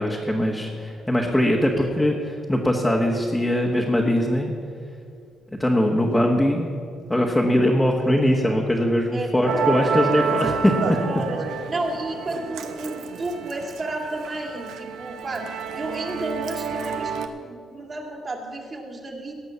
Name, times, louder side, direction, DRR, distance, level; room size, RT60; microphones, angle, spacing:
voice 1, 0.0-4.5 5.6-6.7 7.1-11.0, left 1 dB, 10° left, -2 dB, 1.4 m, -21 dB
voice 2, 9.1-10.2 11.0-11.4 11.7-17.1 17.4-19.3, right 2 dB, 35° right, 1 dB, 2.4 m, -32 dB
Musical instrument, 9.5-17.3, right 6 dB, 80° right, 0.8 m, -29 dB
17.5 x 6.0 x 7.0 m, 2.2 s
cardioid pair, 90°, 0 cm